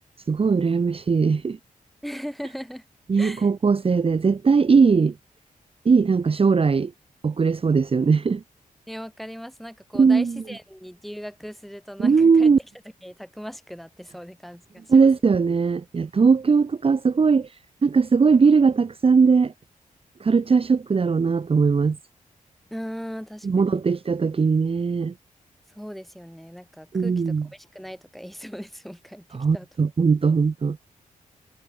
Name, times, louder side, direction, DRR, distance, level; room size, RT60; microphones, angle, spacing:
voice 1, 0.3-1.6 3.1-5.1 5.8-6.9 7.2-8.4 9.9-10.4 12.0-12.6 14.9-17.5 17.8-19.5 20.2-22.0 23.4-25.1 26.9-27.5 29.3-30.8, right 5 dB, 40° right, 1.2 m, -19 dB
voice 2, 2.0-2.8 3.2-3.5 8.9-12.5 13.0-15.1 22.7-23.8 25.7-29.7, equal, ahead, 2.7 m, -38 dB
cardioid pair, 95°, 15 cm